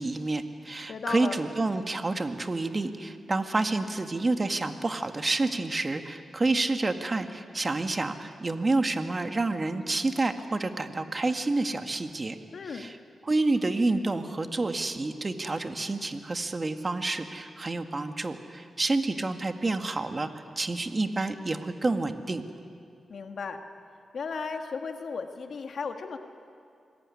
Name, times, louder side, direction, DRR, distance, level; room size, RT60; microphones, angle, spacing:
voice 1, 0.0-12.4 12.7-13.0 13.2-20.3 20.6-22.4, right 2 dB, 35° right, 6 dB, 1.9 m, -29 dB
voice 2, 0.9-1.4 12.5-12.9 23.1-23.6 24.1-26.2, left 5 dB, 70° left, 5 dB, 1.7 m, -35 dB
26.0 x 22.0 x 9.9 m, 2.4 s
cardioid pair, 70°, 0 cm